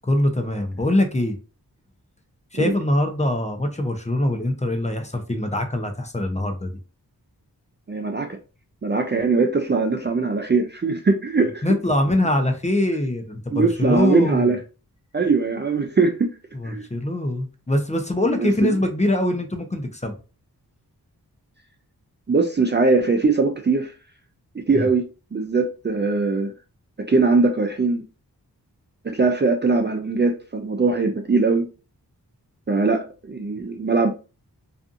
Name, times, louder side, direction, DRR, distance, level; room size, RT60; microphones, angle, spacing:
voice 1, 0.1-1.4 2.5-6.7 11.6-14.5 16.5-20.2 24.7-24.9, left 1 dB, 20° left, 5 dB, 0.6 m, -23 dB
voice 2, 7.9-8.4 8.8-11.6 13.5-14.6 15.1-16.3 16.6-16.9 18.2-18.8 22.3-23.9 24.5-25.0 25.3-26.5 27.1-28.0 29.0-31.7 32.7-34.1, right 4 dB, 30° right, 3 dB, 0.4 m, -21 dB
2.5 x 2.5 x 2.5 m, 0.33 s
cardioid pair, 40°, 39 cm